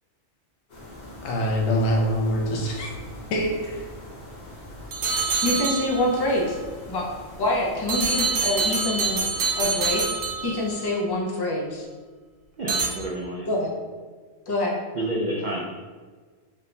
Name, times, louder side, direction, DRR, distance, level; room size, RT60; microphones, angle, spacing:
sound 1, 0.7-10.8, left 1 dB, 55° left, 1.3 m, -42 dB
voice 1, 1.2-2.9 3.3-3.8, equal, 85° left, 0 dB, 1.1 m, -24 dB
sound 2, 4.9-6.2 7.9-10.9 12.7-12.9, right 4 dB, 90° right, 1.0 m, -26 dB
voice 2, 5.4-6.6 6.9-7.1 7.4-9.2 9.6-10.0 10.4-11.8 13.5-13.7 14.5-14.7, left 1 dB, 30° left, -2 dB, 0.4 m, -25 dB
voice 3, 12.6-13.5 14.9-15.6, right 1 dB, 70° right, -2 dB, 0.4 m, -29 dB
3.5 x 2.2 x 4.0 m, 1.4 s
omnidirectional pair, 1.3 m